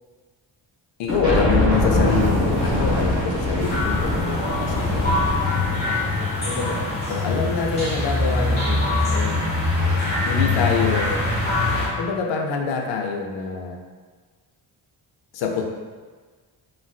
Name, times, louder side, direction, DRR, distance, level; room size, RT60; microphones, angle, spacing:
voice 1, 1.0-5.3 6.4-9.4 10.2-11.2 12.0-13.8 15.3-15.6, left 5 dB, 85° left, 1 dB, 0.5 m, -26 dB
sound 1, 1.1-6.1, left 1 dB, 30° right, 1.1 m, -23 dB
sound 2, 3.6-11.9, left 2 dB, 25° left, 1.0 m, -23 dB
3.1 x 2.5 x 2.3 m, 1.5 s
wide cardioid pair, 175°, 42 cm